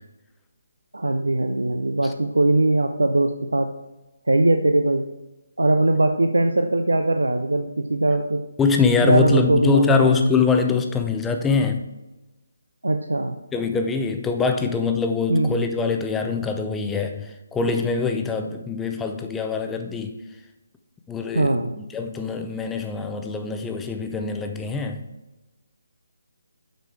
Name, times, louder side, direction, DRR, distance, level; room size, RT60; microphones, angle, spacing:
voice 1, 0.9-3.7 4.3-5.0 5.6-8.4 9.0-10.3 12.8-13.4 15.3-15.6 21.3-21.8, right 2 dB, 80° right, 7 dB, 0.5 m, -20 dB
voice 2, 8.6-11.8 13.5-20.2 21.1-25.0, left 5 dB, 10° left, 5 dB, 0.6 m, -23 dB
7.8 x 5.2 x 4.6 m, 1.0 s
figure-of-eight pair, 145°, 0 cm